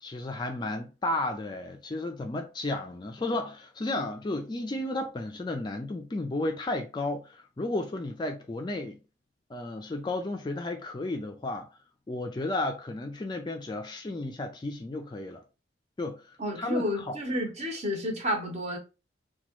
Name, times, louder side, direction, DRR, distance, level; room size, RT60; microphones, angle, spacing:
voice 1, 0.0-9.0 9.5-11.7 12.1-15.4 16.0-17.2, left 2 dB, 25° left, 0.3 m, -33 dB
voice 2, 16.4-18.8, left 1 dB, 35° right, 0.8 m, -30 dB
2.9 x 2.2 x 2.9 m
head